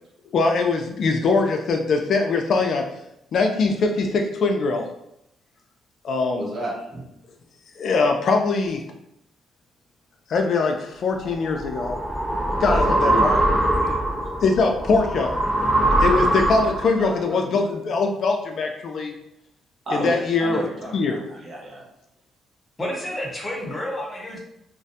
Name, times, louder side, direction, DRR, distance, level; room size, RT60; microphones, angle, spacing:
voice 1, 0.3-2.8 3.3-4.9 6.0-6.5 7.8-8.8 10.3-12.0 12.6-13.3 14.4-15.3 16.0-19.1 19.9-20.6 20.9-21.2, left 4 dB, 60° left, 3 dB, 0.3 m, -22 dB
voice 2, 6.4-7.0 12.5-12.8 13.1-13.4 13.8-14.0 17.0-17.7 19.9-21.8, equal, 45° right, -4 dB, 0.9 m, -32 dB
sound 1, 11.2-17.0, right 1 dB, 10° right, 0.4 m, -22 dB
voice 3, 22.8-24.4, left 1 dB, 25° left, -2 dB, 0.8 m, -30 dB
2.4 x 2.2 x 2.7 m, 0.81 s
cardioid pair, 90°, 0 cm